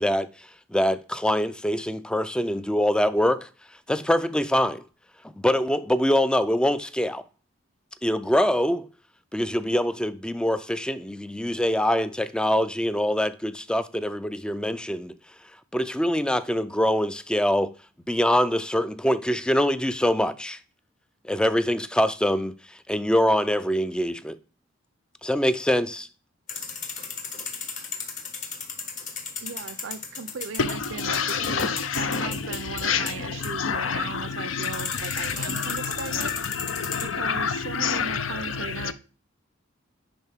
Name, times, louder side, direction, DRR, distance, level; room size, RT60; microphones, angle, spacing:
voice 1, 0.0-3.5 3.9-4.8 5.4-7.2 8.0-8.9 9.3-15.1 15.7-17.7 18.1-20.6 21.2-24.4 25.2-26.1, equal, 5° left, 0.3 m, -24 dB
sound 1, 26.5-37.0, left 5 dB, 40° left, 1.2 m, -36 dB
voice 2, 29.4-31.7 31.9-36.3 37.0-38.9, right 5 dB, 70° right, 0.5 m, -37 dB
voice 3, 30.6-38.9, left 6 dB, 80° left, 0.6 m, -28 dB
10.0 x 3.9 x 3.5 m
head